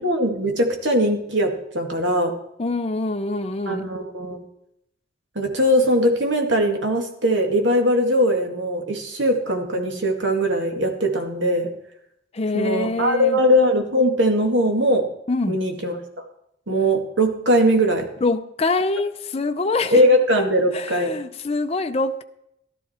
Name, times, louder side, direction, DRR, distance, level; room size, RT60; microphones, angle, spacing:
voice 1, 0.0-2.3 3.7-4.4 5.4-11.7 12.5-15.1 15.5-16.0 16.7-18.0 19.9-21.1, equal, 60° right, 2.0 m, -20 dB
voice 2, 2.6-3.9 12.3-13.4 15.3-15.6 18.2-20.0 20.4-20.5 20.7-22.2, left 3 dB, 30° left, 0.6 m, -24 dB
13.5 x 12.5 x 4.3 m
head